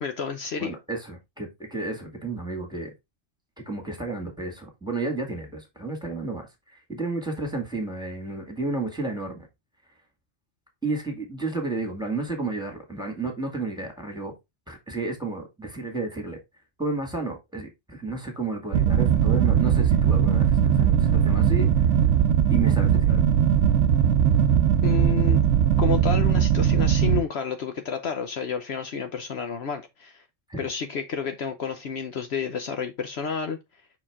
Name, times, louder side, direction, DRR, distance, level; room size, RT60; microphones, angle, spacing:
voice 1, 0.0-0.7 24.8-25.4 25.8-30.2 30.6-33.6, left 6 dB, 65° left, 1.0 m, -30 dB
voice 2, 0.6-2.9 3.7-9.5 10.8-14.3 14.7-16.4 16.8-21.9 22.5-23.2 30.5-30.7, right 3 dB, 5° right, 2.0 m, -32 dB
sound 1, 18.7-27.2, right 9 dB, 80° right, 0.9 m, -20 dB
5.9 x 4.8 x 3.6 m
omnidirectional pair, 1.2 m